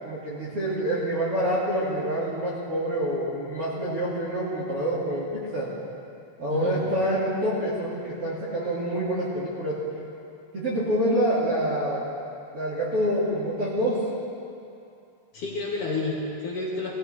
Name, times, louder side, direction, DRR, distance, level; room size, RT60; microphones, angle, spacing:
voice 1, 0.0-5.7 6.4-9.8 10.5-12.0 12.5-14.0, equal, 45° right, -8 dB, 2.1 m, -27 dB
voice 2, 15.3-17.0, left 3 dB, 60° left, -6 dB, 2.4 m, -30 dB
19.5 x 16.0 x 3.2 m, 2.7 s
omnidirectional pair, 5.1 m